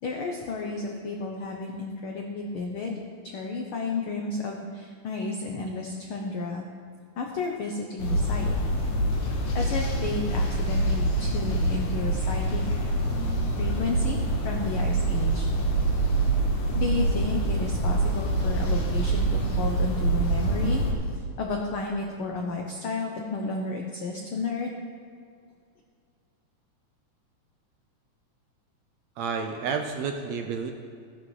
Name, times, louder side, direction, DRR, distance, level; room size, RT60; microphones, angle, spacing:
voice 1, 0.0-3.0 3.2-6.7 7.2-8.5 9.5-12.6 13.6-15.5 16.8-20.8 21.1-24.7, left 3 dB, 85° left, 1 dB, 1.2 m, -32 dB
sound 1, 8.0-20.9, right 2 dB, 65° left, 2.7 m, -25 dB
voice 2, 29.2-30.7, right 5 dB, 75° right, 4 dB, 1.7 m, -30 dB
15.0 x 11.5 x 3.2 m, 2.3 s
omnidirectional pair, 3.6 m